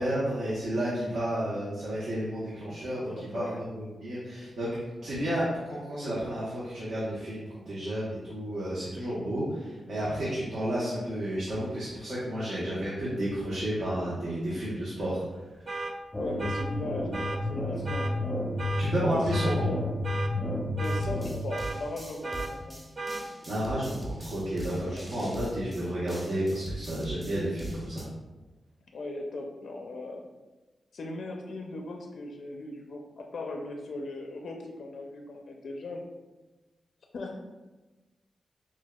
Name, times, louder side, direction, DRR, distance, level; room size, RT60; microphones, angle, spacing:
voice 1, 0.0-4.7 5.0-15.2 15.5-15.6 18.8-19.6 23.4-28.1, right 1 dB, 75° right, -8 dB, 0.9 m, -31 dB
voice 2, 3.1-3.6 16.2-18.4 19.1-19.8 20.7-22.8 24.8-25.0 28.9-30.3 30.9-36.0 37.1-37.4, left 2 dB, 70° left, 2 dB, 0.4 m, -38 dB
sound 1, 15.7-15.9 16.4-16.7 17.1-17.4 17.9-18.1 18.6-18.9 19.3-19.6 20.0-20.3 20.8-21.0 21.5-21.8 22.2-22.5 23.0-23.2, right 3 dB, 40° right, 0.3 m, -34 dB
sound 2, 16.1-21.3, left 2 dB, 15° left, 0.5 m, -31 dB
sound 3, 20.8-28.0, right 1 dB, 20° right, 0.9 m, -41 dB
6.0 x 2.3 x 2.3 m, 1.2 s
wide cardioid pair, 110°, 0 cm